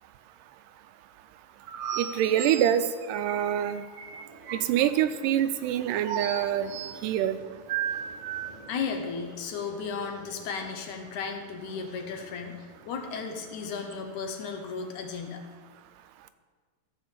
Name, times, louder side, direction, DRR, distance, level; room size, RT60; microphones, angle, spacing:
sound 1, 1.7-4.9 6.0-7.0 7.7-8.5, right 9 dB, 70° right, 1.9 m, -35 dB
voice 1, 2.0-2.8 3.1-3.8 4.5-6.7 7.0-7.4, right 10 dB, 90° right, 11 dB, 2.2 m, -25 dB
sound 2, 3.9-14.4, right 1 dB, 15° right, 2.4 m, -53 dB
voice 2, 8.7-15.4, left 5 dB, 70° left, 4 dB, 2.3 m, -35 dB
14.0 x 5.1 x 7.2 m, 1.5 s
omnidirectional pair, 3.8 m